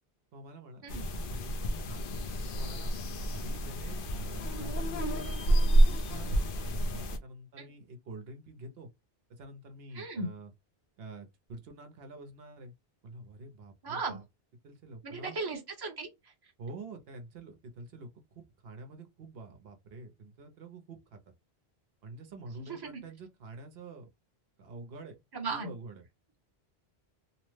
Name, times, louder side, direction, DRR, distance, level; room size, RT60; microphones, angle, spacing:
voice 1, 0.3-2.0 2.5-2.9 3.3-5.3 5.6-8.9 9.3-10.5 11.0-12.7 13.0-14.2 14.6-15.4 16.6-21.2 22.0-24.1 24.6-25.2 25.5-26.0, right 2 dB, 75° right, 0.9 m, -47 dB
sound 1, 0.9-7.2, right 1 dB, 65° left, 0.7 m, -29 dB
voice 2, 9.9-10.3 13.8-14.2 15.0-16.3 22.6-23.0 25.3-25.7, right 3 dB, 25° right, 0.8 m, -37 dB
2.8 x 2.0 x 3.1 m
omnidirectional pair, 1.0 m